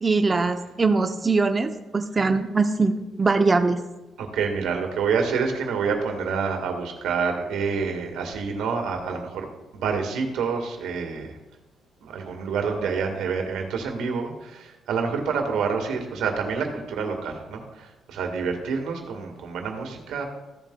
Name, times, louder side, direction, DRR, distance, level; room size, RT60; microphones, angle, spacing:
voice 1, 0.0-2.9 3.2-3.8, right 3 dB, 25° right, 6 dB, 0.5 m, -22 dB
voice 2, 4.2-9.5 9.7-11.4 12.0-20.2, right 5 dB, 85° right, 3 dB, 1.5 m, -27 dB
14.5 x 7.3 x 2.2 m, 1.0 s
cardioid pair, 90°, 0 cm